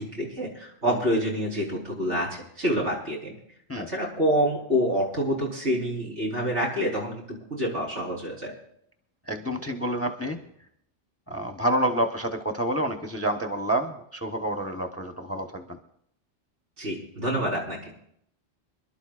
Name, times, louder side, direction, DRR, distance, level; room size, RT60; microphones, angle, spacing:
voice 1, 0.0-3.3 3.8-8.5 16.8-17.8, equal, 90° right, -4 dB, 4.7 m, -27 dB
voice 2, 9.3-10.4 11.3-15.8, right 1 dB, 15° left, 4 dB, 0.9 m, -28 dB
27.0 x 12.0 x 2.5 m, 0.70 s
omnidirectional pair, 1.2 m